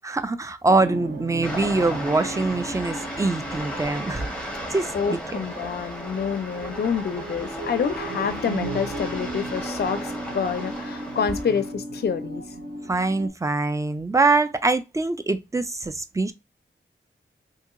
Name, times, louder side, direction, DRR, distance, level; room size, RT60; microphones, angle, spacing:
voice 1, 0.0-4.3 4.7-5.4 12.9-16.3, right 3 dB, 15° right, 0.3 m, -24 dB
sound 1, 0.7-13.3, right 2 dB, 50° right, 0.9 m, -36 dB
sound 2, 1.4-11.7, equal, 5° left, 0.9 m, -35 dB
voice 2, 4.9-12.4, left 6 dB, 50° left, 0.4 m, -27 dB
2.8 x 2.7 x 2.4 m
wide cardioid pair, 65°, 21 cm